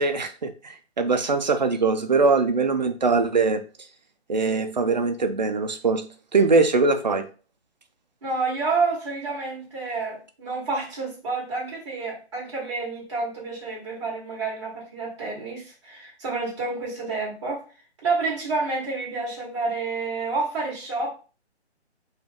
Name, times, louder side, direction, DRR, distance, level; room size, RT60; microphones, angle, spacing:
voice 1, 0.0-3.6 4.3-6.1 6.3-7.3, right 4 dB, 40° right, 8 dB, 0.4 m, -22 dB
voice 2, 8.2-17.6 18.0-21.1, right 3 dB, 25° right, -5 dB, 1.9 m, -29 dB
3.9 x 2.4 x 3.5 m, 0.35 s
hypercardioid pair, 170°, 33 cm